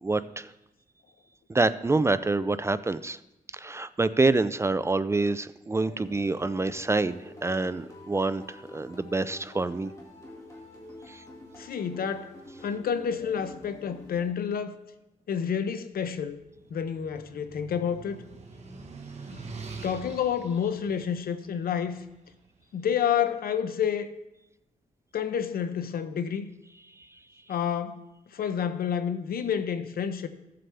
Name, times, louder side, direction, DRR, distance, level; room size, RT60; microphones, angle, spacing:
voice 1, 0.0-0.5 1.5-3.2 3.5-9.9 11.1-11.2, right 3 dB, 20° right, 0.3 m, -27 dB
sound 1, 5.8-14.7, left 1 dB, 20° left, 2.3 m, -47 dB
voice 2, 11.6-12.4 12.6-14.8 15.3-16.4 16.7-18.2 19.8-22.0 22.7-24.1 25.1-26.5 27.5-28.0 28.3-30.3, left 8 dB, 85° left, 0.7 m, -29 dB
sound 2, 16.2-22.5, right 4 dB, 50° right, 1.3 m, -45 dB
15.0 x 7.6 x 3.4 m
wide cardioid pair, 120°, 15 cm